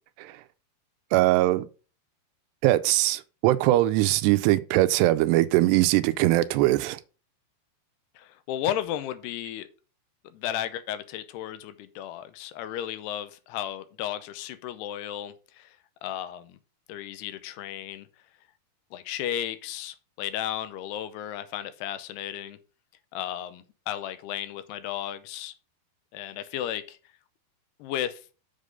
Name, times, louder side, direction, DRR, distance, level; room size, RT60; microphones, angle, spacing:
voice 1, 1.1-1.7 2.6-7.0, right 16 dB, 85° right, 2.7 m, -21 dB
voice 2, 8.2-9.7 10.3-15.8 16.0-16.6 16.9-18.1 18.9-22.6 23.1-25.5 26.1-27.0 27.8-28.2, left 11 dB, 80° left, 2.7 m, -34 dB
7.6 x 6.6 x 5.2 m
omnidirectional pair, 4.8 m